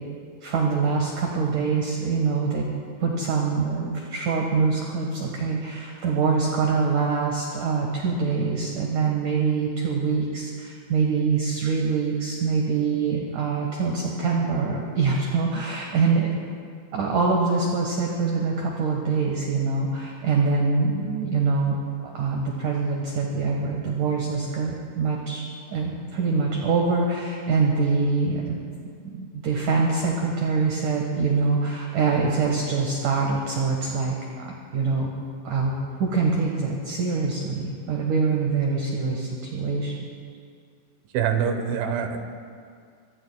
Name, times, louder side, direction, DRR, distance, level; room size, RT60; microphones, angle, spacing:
voice 1, 0.4-2.7 3.0-16.3 16.9-28.5 28.8-35.1 35.4-40.0, right 4 dB, 60° right, -1 dB, 2.2 m, -24 dB
voice 2, 41.1-42.2, right 7 dB, 75° right, 5 dB, 3.2 m, -24 dB
26.0 x 22.5 x 2.3 m, 2.2 s
omnidirectional pair, 5.7 m